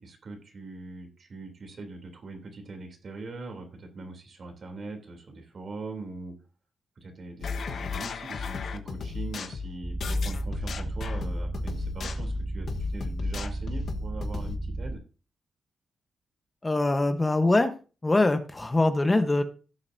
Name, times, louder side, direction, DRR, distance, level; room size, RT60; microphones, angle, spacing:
voice 1, 0.0-6.3 7.0-15.0, right 3 dB, 50° right, 3.3 m, -41 dB
sound 1, 7.4-14.6, left 5 dB, 65° left, 1.1 m, -35 dB
sound 2, 9.8-15.0, right 1 dB, ahead, 0.7 m, -33 dB
voice 2, 16.6-17.7 18.0-19.4, left 2 dB, 20° left, 1.1 m, -23 dB
16.5 x 6.8 x 2.8 m
cardioid pair, 115°, 0 cm